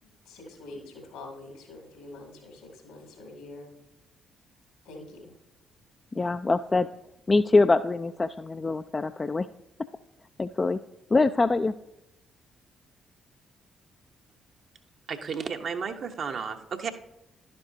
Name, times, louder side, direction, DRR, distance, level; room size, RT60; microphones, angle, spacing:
voice 1, 0.0-3.7 4.8-5.3, left 2 dB, 75° left, 1 dB, 2.5 m, -45 dB
voice 2, 6.1-6.9 7.3-9.5 10.4-10.8 11.1-11.7, left 3 dB, 30° left, 9 dB, 0.3 m, -24 dB
voice 3, 15.1-16.9, right 6 dB, 55° right, 5 dB, 0.8 m, -33 dB
11.0 x 9.5 x 2.7 m, 0.87 s
figure-of-eight pair, 40°, 0 cm